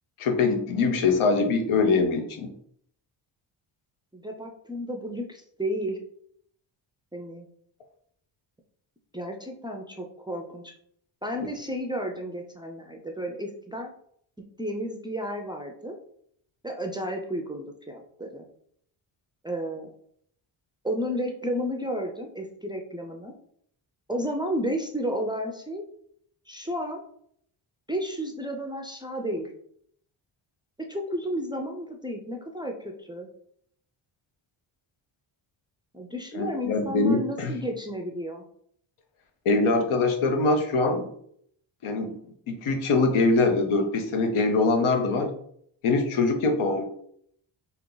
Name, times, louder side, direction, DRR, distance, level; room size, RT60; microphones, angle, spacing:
voice 1, 0.2-2.5 36.3-37.5 39.4-41.1 41.8-42.2 42.5-45.3 45.8-46.8, left 3 dB, 85° left, 5 dB, 1.0 m, -23 dB
voice 2, 4.1-6.0 7.1-7.5 9.1-10.7 11.2-13.9 14.4-16.0 16.6-18.4 19.4-19.9 20.8-23.3 24.1-25.8 26.5-27.0 27.9-29.5 30.8-33.3 35.9-38.5, equal, 10° right, 1 dB, 0.4 m, -32 dB
3.6 x 2.9 x 3.8 m, 0.66 s
cardioid pair, 130°, 48 cm